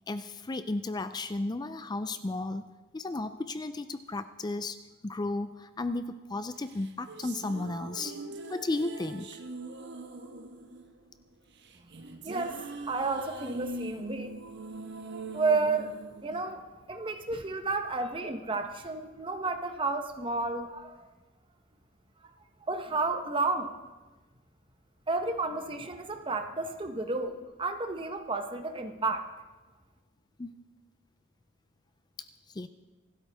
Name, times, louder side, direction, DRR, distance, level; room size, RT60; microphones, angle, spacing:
voice 1, 0.1-2.6 2.9-4.8 5.0-8.2 8.5-9.4 30.4-30.5 32.2-32.7, left 2 dB, 20° left, 11 dB, 0.4 m, -34 dB
sound 1, 6.7-17.1, right 2 dB, 55° right, 1.2 m, -42 dB
voice 2, 12.2-14.3 15.3-21.0 22.7-23.7 25.1-29.3, right 3 dB, 25° right, 6 dB, 1.0 m, -32 dB
26.0 x 12.5 x 3.5 m, 1.2 s
head